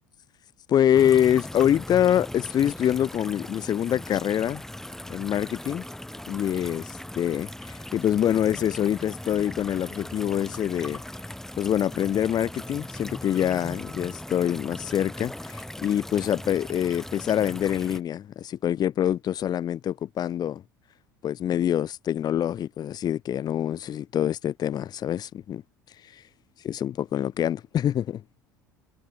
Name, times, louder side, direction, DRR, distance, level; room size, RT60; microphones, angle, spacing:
voice 1, 0.7-4.6 5.1-5.8 6.3-11.0 11.6-20.6 21.2-25.6 26.0-26.2 26.6-28.2, left 10 dB, 40° left, 2.5 m, -25 dB
sound 1, 0.9-18.0, left 1 dB, 5° left, 3.0 m, -39 dB
figure-of-eight pair, 65°, 11 cm